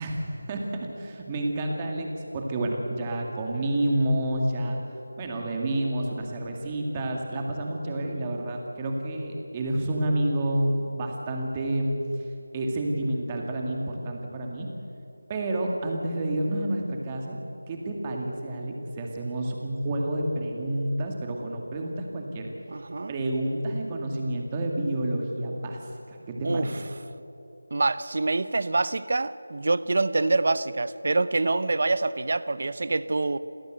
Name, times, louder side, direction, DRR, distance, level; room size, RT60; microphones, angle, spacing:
voice 1, 0.0-2.1 2.3-4.8 5.2-12.0 12.5-14.7 15.3-17.4 17.7-22.5 23.1-25.8 26.1-26.7, right 1 dB, 15° right, 1 dB, 2.2 m, -29 dB
voice 2, 22.7-23.1 26.4-26.8 27.7-33.4, right 3 dB, 45° right, 16 dB, 0.8 m, -26 dB
28.0 x 16.5 x 7.9 m, 3.0 s
figure-of-eight pair, 175°, 0 cm